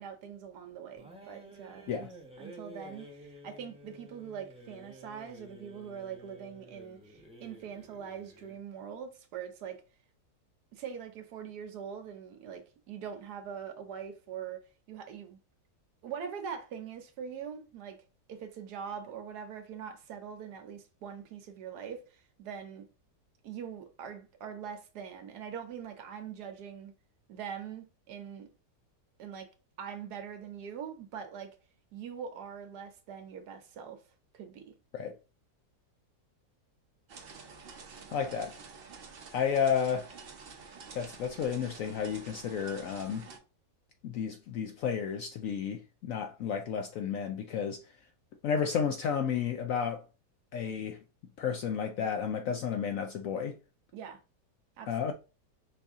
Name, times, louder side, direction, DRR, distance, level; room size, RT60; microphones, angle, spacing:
voice 1, 0.0-2.1 2.4-9.8 10.7-14.6 14.9-15.4 16.0-22.8 23.4-26.9 27.3-28.5 29.2-29.5 29.8-31.6 31.9-34.0 34.3-34.7 53.9-54.2 54.8-55.1, right 7 dB, 70° right, 1.3 m, -43 dB
sound 1, 1.0-8.6, right 1 dB, 5° right, 0.7 m, -51 dB
sound 2, 37.1-43.4, right 5 dB, 50° right, 0.7 m, -49 dB
voice 2, 38.1-38.5 39.3-40.1 40.9-43.3 44.0-47.8 48.4-50.0 50.5-51.0 51.4-53.6 54.9-55.1, left 7 dB, 70° left, 0.8 m, -32 dB
5.5 x 2.6 x 3.5 m
omnidirectional pair, 1.8 m